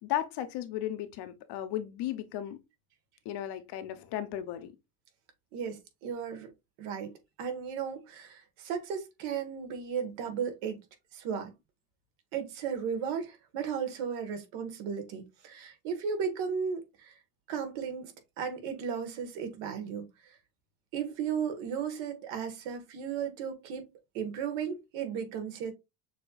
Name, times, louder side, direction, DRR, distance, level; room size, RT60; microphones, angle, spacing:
voice 1, 0.0-2.6 3.2-4.7, left 12 dB, 55° left, 0.8 m, -35 dB
voice 2, 5.5-6.5 6.8-7.1 7.4-10.8 11.1-11.5 12.3-17.1 17.5-20.4 20.9-23.8 24.1-25.7, right 7 dB, 75° right, 1.5 m, -35 dB
6.5 x 2.9 x 2.3 m
cardioid pair, 135°, 49 cm